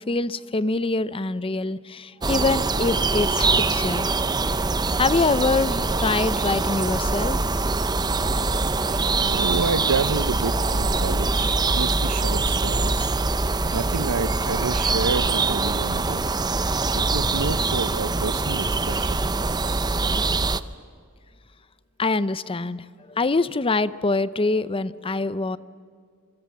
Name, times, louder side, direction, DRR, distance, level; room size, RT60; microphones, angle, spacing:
voice 1, 0.0-4.1 5.0-7.4 22.0-25.6, left 3 dB, 25° left, 16 dB, 0.6 m, -24 dB
sound 1, 2.2-20.6, right 3 dB, 20° right, 0.7 m, -23 dB
voice 2, 8.7-13.1 13.7-16.3 16.9-19.2, right 4 dB, 90° right, 16 dB, 0.8 m, -29 dB
28.0 x 24.0 x 7.3 m, 2.2 s
head